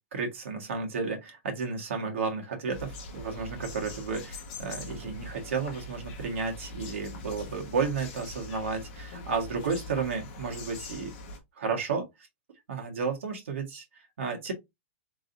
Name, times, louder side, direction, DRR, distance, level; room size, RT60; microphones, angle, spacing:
voice 1, 0.1-11.1 11.6-12.3 12.7-14.5, right 5 dB, 75° right, 1.7 m, -32 dB
sound 1, 2.7-11.4, left 2 dB, 30° left, 1.1 m, -42 dB
3.9 x 3.9 x 2.6 m
supercardioid pair, 180°, 7 cm